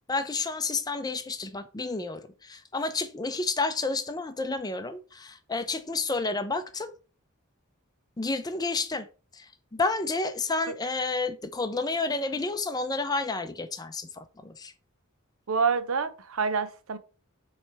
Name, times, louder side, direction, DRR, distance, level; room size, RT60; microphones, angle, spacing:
voice 1, 0.1-6.9 8.2-9.1 9.3-14.7, left 3 dB, 20° left, 0.5 m, -30 dB
voice 2, 15.5-17.0, right 5 dB, 70° right, 0.7 m, -27 dB
7.2 x 3.3 x 4.6 m
head